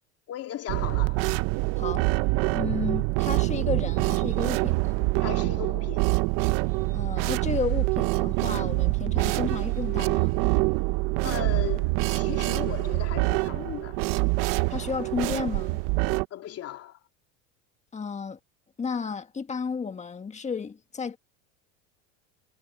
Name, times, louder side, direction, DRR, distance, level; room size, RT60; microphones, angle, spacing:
voice 1, 0.3-1.3 5.2-6.1 11.2-14.1 16.3-17.0, left 11 dB, 40° left, 3.2 m, -37 dB
sound 1, 0.7-16.3, right 23 dB, 60° right, 0.9 m, -25 dB
voice 2, 2.5-5.0 6.9-10.4 14.7-15.8 17.9-18.4 18.8-21.2, left 5 dB, 20° left, 1.7 m, -32 dB
sound 2, 3.1-5.9 6.4-11.6, right 10 dB, 35° right, 3.7 m, -47 dB
supercardioid pair, 115°, 36 cm